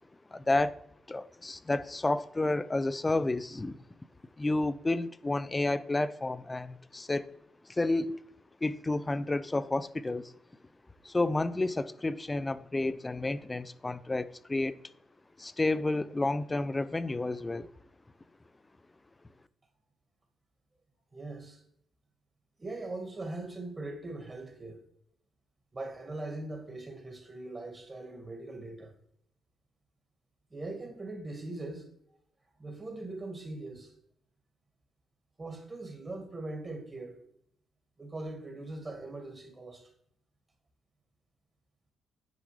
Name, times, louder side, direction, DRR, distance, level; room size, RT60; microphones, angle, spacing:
voice 1, 0.3-0.8 1.1-3.8 4.4-7.3 7.7-8.2 8.6-10.3 11.0-14.8 15.4-17.7, left 2 dB, 20° left, 0.4 m, -30 dB
voice 2, 21.1-21.6 22.6-24.8 25.7-28.9 30.5-31.9 32.6-33.9 35.4-37.2 38.0-39.9, right 2 dB, 25° right, 1.6 m, -41 dB
9.1 x 5.0 x 3.2 m
cardioid pair, 90°, 0 cm